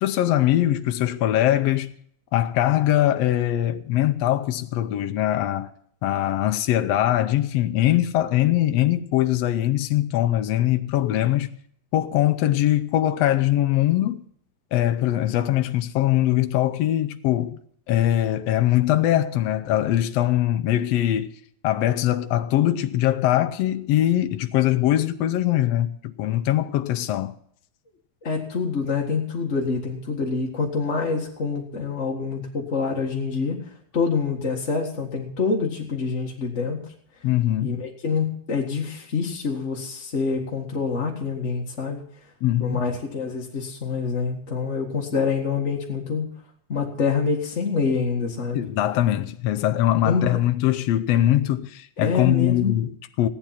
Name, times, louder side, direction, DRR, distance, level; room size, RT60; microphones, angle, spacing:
voice 1, 0.0-2.0 2.3-5.7 6.0-11.5 11.9-14.2 14.7-17.6 17.9-21.3 21.6-27.3 37.2-37.8 42.4-42.8 48.5-53.3, left 13 dB, 75° left, 1.6 m, -22 dB
voice 2, 28.2-36.8 37.6-42.0 42.6-46.3 46.7-48.7 50.0-50.4 52.0-52.7, left 5 dB, 30° left, 1.6 m, -26 dB
16.5 x 11.5 x 5.8 m
omnidirectional pair, 3.5 m